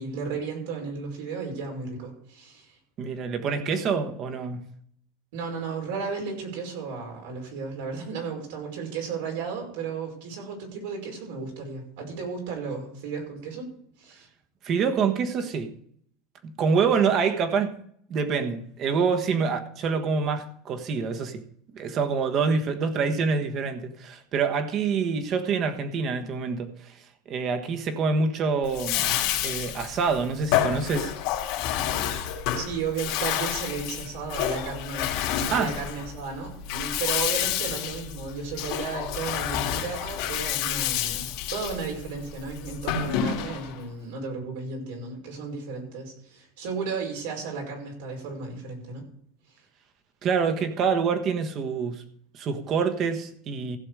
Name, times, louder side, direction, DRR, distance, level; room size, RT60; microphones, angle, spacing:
voice 1, 0.0-2.8 5.3-13.7 14.0-14.3 32.5-49.0, right 5 dB, 85° right, 5.5 m, -34 dB
voice 2, 3.0-4.6 14.6-15.7 16.4-17.7 18.1-21.4 21.7-27.0 27.3-29.1 29.4-31.1 35.5-35.7 50.2-52.0 52.3-53.8, right 5 dB, 40° right, 1.4 m, -26 dB
Bathtub (filling or washing), 28.6-43.8, left 10 dB, 65° left, 2.1 m, -29 dB
15.5 x 7.1 x 4.9 m
supercardioid pair, 135°, 0 cm